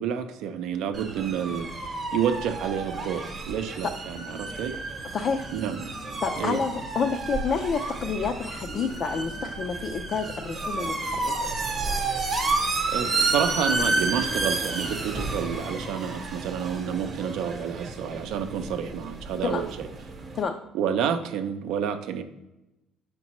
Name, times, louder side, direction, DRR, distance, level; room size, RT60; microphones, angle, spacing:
voice 1, 0.0-1.7 2.1-4.8 5.5-5.9 6.4-6.6 12.9-19.9 20.7-22.2, right 8 dB, 65° right, 8 dB, 0.5 m, -29 dB
sound 1, 0.9-20.4, right 3 dB, 25° right, 0.9 m, -31 dB
voice 2, 5.1-5.5 6.2-11.3 19.4-19.6 20.4-20.5, left 5 dB, 35° left, 4 dB, 0.4 m, -29 dB
7.2 x 5.2 x 3.0 m, 0.94 s
cardioid pair, 160°, 0 cm